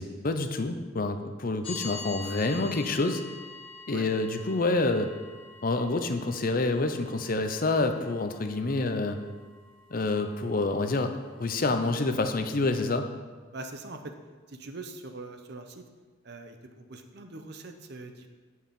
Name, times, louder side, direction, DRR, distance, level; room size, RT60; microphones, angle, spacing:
voice 1, 0.0-3.2 3.9-5.1 5.6-9.2 9.9-13.1, left 2 dB, 45° left, 7 dB, 0.6 m, -28 dB
sound 1, 1.6-11.7, left 4 dB, 30° left, 1.4 m, -46 dB
voice 2, 13.5-14.1 14.5-15.9 16.2-18.3, right 2 dB, 55° right, 6 dB, 0.8 m, -42 dB
8.5 x 4.7 x 7.5 m, 1.4 s
head